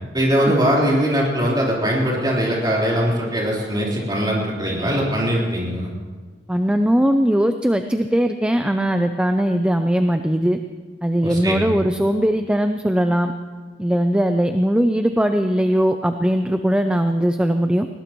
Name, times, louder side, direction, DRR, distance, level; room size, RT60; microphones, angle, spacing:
voice 1, 0.1-5.9 11.2-11.7, equal, 25° right, -4 dB, 4.1 m, -21 dB
voice 2, 6.5-10.6 11.0-13.3 13.8-17.9, equal, 5° right, 7 dB, 0.5 m, -19 dB
20.5 x 19.0 x 3.1 m, 1.4 s
head